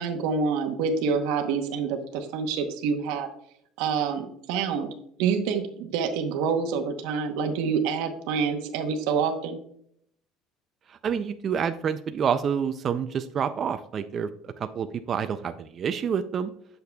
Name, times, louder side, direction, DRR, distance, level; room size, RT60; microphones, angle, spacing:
voice 1, 0.0-3.3 3.8-4.9 5.2-9.6, right 5 dB, 80° right, 4 dB, 0.9 m, -27 dB
voice 2, 10.9-14.3 14.6-16.5, right 7 dB, 30° right, 9 dB, 0.3 m, -28 dB
8.1 x 6.6 x 2.2 m, 0.69 s
cardioid pair, 160°, 0 cm